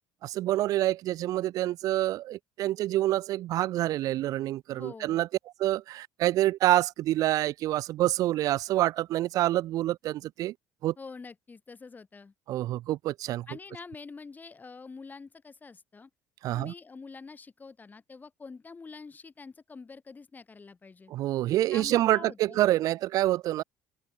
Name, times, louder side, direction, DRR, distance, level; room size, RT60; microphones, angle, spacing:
voice 1, 0.2-5.3 5.6-10.5 10.8-10.9 12.5-13.5 16.4-16.7 21.1-23.6, right 14 dB, 55° right, 0.3 m, -27 dB
voice 2, 4.8-5.2 11.0-12.3 13.5-16.1 16.5-21.1 21.7-22.6, left 4 dB, 25° left, 5.5 m, -46 dB
supercardioid pair, 80°, 7 cm